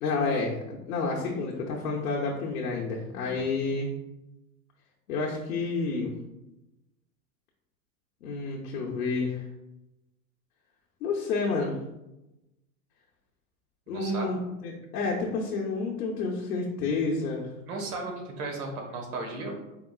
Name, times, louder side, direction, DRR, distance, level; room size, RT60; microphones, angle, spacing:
voice 1, 0.0-3.9 5.1-6.1 8.2-9.4 11.0-11.8 13.9-17.5, left 3 dB, 85° left, -2 dB, 0.9 m, -29 dB
voice 2, 13.9-14.4 17.6-19.5, right 3 dB, 70° right, 1 dB, 1.4 m, -35 dB
4.7 x 3.6 x 2.3 m, 0.95 s
hypercardioid pair, 110°, 47 cm